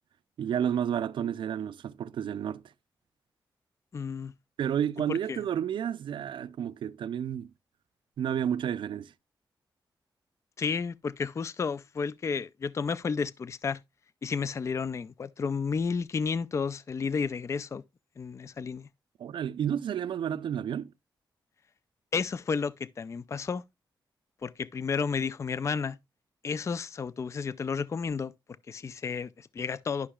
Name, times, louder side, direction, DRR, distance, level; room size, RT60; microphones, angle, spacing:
voice 1, 0.4-2.6 4.6-7.5 8.2-9.1 19.2-20.9, right 9 dB, 90° right, 0.4 m, -31 dB
voice 2, 3.9-4.3 5.1-5.4 10.6-13.8 14.2-17.8 18.2-18.9 22.1-23.6 24.4-26.0 26.4-28.3 28.7-30.1, left 5 dB, 35° left, 0.3 m, -32 dB
11.5 x 5.5 x 2.3 m
wide cardioid pair, 115°, 8 cm